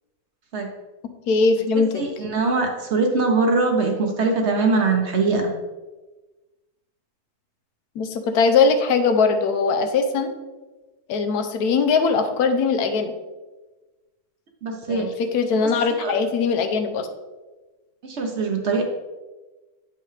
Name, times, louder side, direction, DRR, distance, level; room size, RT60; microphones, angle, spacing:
voice 1, 1.3-2.0 8.0-10.3 11.1-13.1 14.9-17.1, left 4 dB, 80° left, 7 dB, 1.2 m, -20 dB
voice 2, 2.0-5.5 14.6-15.1 16.0-16.2 18.0-18.8, right 3 dB, 50° right, 2 dB, 1.0 m, -22 dB
8.5 x 5.5 x 3.3 m, 1.2 s
omnidirectional pair, 1.6 m